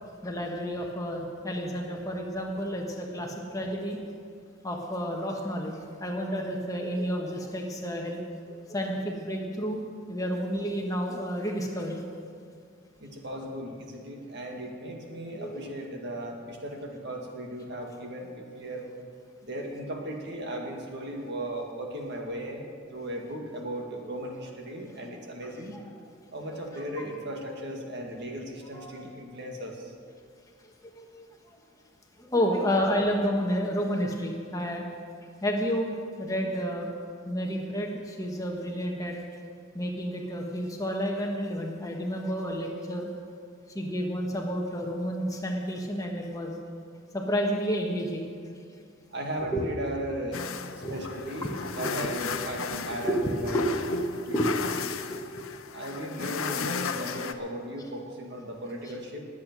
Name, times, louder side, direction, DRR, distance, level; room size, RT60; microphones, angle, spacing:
voice 1, 0.2-4.0 4.6-8.2 8.7-9.8 10.1-12.0 15.4-15.6 25.7-25.8 26.5-27.0 28.7-29.1 30.9-31.2 32.2-34.8 35.4-36.9 37.2-39.2 39.7-43.1 43.7-46.5 47.1-48.3 49.5-49.7 50.8-51.0 51.4-51.5 53.0-54.0 54.3-54.5 55.0-55.4, equal, 15° left, 1 dB, 1.3 m, -30 dB
voice 2, 13.0-18.9 19.4-22.6 22.9-25.7 26.3-29.9 49.1-50.5 50.9-53.7 54.3-54.4 55.7-59.2, right 1 dB, 55° right, 1 dB, 2.0 m, -36 dB
sound 1, 50.3-57.3, left 6 dB, 85° left, 0.8 m, -35 dB
20.0 x 8.4 x 6.2 m, 2.2 s
head